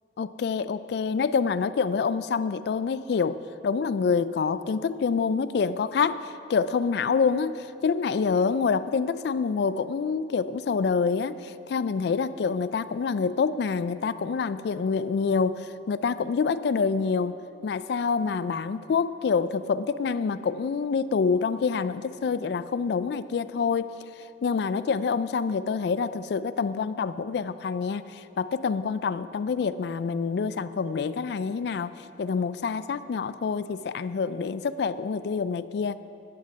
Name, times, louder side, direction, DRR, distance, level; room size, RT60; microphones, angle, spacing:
voice 1, 0.2-17.3 17.6-23.9 24.4-36.0, left 5 dB, 65° left, 14 dB, 0.3 m, -27 dB
11.5 x 8.8 x 5.1 m, 2.8 s
head